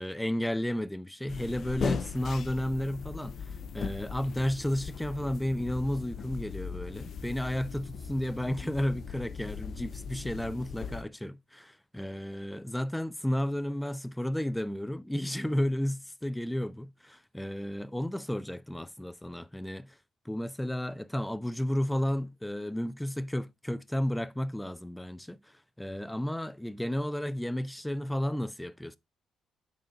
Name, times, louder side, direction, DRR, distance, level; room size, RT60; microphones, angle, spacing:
voice 1, 0.0-3.4 3.7-19.9 20.3-25.4 25.8-29.0, left 1 dB, 5° left, 0.4 m, -32 dB
sound 1, 1.3-11.0, left 6 dB, 60° left, 0.6 m, -39 dB
6.4 x 4.2 x 3.8 m
cardioid pair, 90°, 0 cm